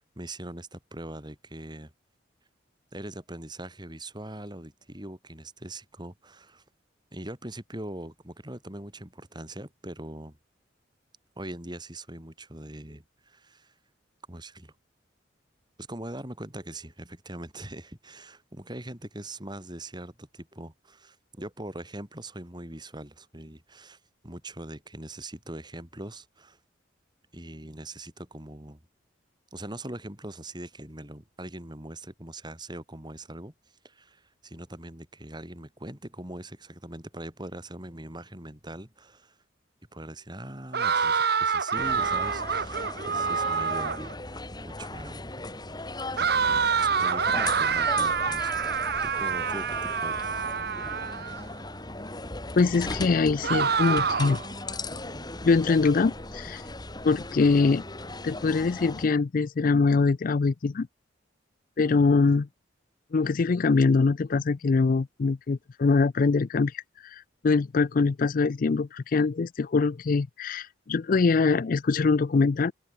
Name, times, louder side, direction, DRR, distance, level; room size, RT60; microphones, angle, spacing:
voice 1, 0.1-1.9 2.9-6.6 7.1-10.4 11.4-13.7 14.3-14.7 15.8-26.6 27.3-28.8 29.5-33.5 33.8-39.4 39.9-45.3 46.1-50.5, right 1 dB, 25° right, 5.0 m, -41 dB
sound 1, 40.7-44.1 46.2-51.4 53.4-54.5, right 6 dB, 55° right, 1.2 m, -27 dB
sound 2, 41.7-59.1, left 2 dB, 20° left, 3.1 m, -38 dB
voice 2, 52.6-54.4 55.4-56.6 57.0-57.8 58.2-60.9 61.8-62.5 63.1-72.7, left 4 dB, 45° left, 0.4 m, -23 dB
head